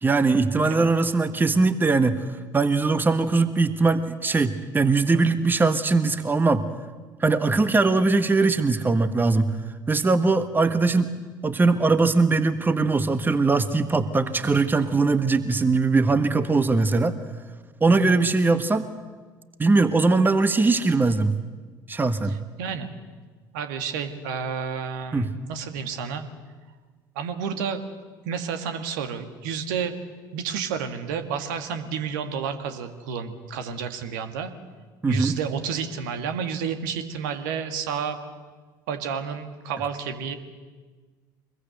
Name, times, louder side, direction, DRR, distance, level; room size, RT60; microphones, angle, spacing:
voice 1, 0.0-2.2 2.5-6.6 7.2-9.5 9.9-11.1 11.4-17.2 17.8-18.9 19.6-21.4 21.9-22.4 25.1-25.3 35.0-35.4, right 3 dB, 20° right, 11 dB, 1.4 m, -21 dB
voice 2, 22.3-22.9 23.5-26.3 27.2-27.8 28.3-30.0 30.3-34.5 35.1-38.2 38.9-40.4, right 6 dB, 70° right, 7 dB, 2.0 m, -30 dB
24.5 x 21.5 x 8.0 m, 1.4 s
figure-of-eight pair, 60°, 11 cm